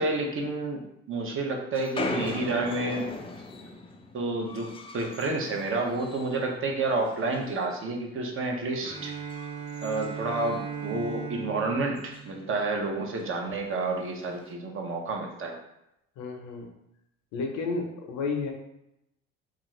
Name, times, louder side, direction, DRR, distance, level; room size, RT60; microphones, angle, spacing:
voice 1, 0.0-3.1 4.1-4.7 4.9-9.1 9.8-15.6, right 2 dB, 45° right, 1 dB, 0.7 m, -30 dB
sound 1, 1.7-6.6 6.9-7.8 8.2-8.4 8.9-10.9 11.2-11.3 11.5-11.6 12.0-12.4 13.2-13.3 14.2-14.5, left 3 dB, 20° left, 0.3 m, -39 dB
Bowed string instrument, 8.8-12.9, right 6 dB, 15° right, 0.8 m, -38 dB
voice 2, 16.2-16.7 17.3-18.5, left 4 dB, 70° left, 2 dB, 0.7 m, -31 dB
2.5 x 2.4 x 3.0 m, 0.83 s
supercardioid pair, 80°, 30 cm